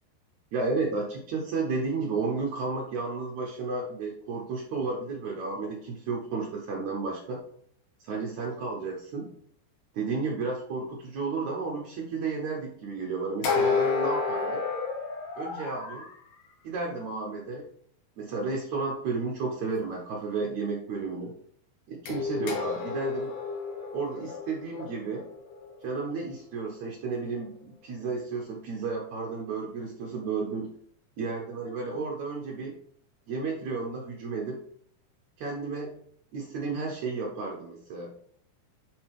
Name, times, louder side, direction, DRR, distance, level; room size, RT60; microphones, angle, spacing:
voice 1, 0.5-7.4 8.0-9.3 9.9-14.6 15.4-16.1 16.6-17.6 18.2-21.3 21.9-23.3 23.9-25.3 25.8-30.7 31.2-32.8 33.3-34.6 35.4-35.9 36.3-38.1, right 4 dB, 85° right, -2 dB, 1.6 m, -32 dB
sound 1, 13.4-16.1 22.1-26.1, left 4 dB, 70° left, 3.1 m, -30 dB
9.4 x 5.7 x 3.6 m, 0.63 s
omnidirectional pair, 5.0 m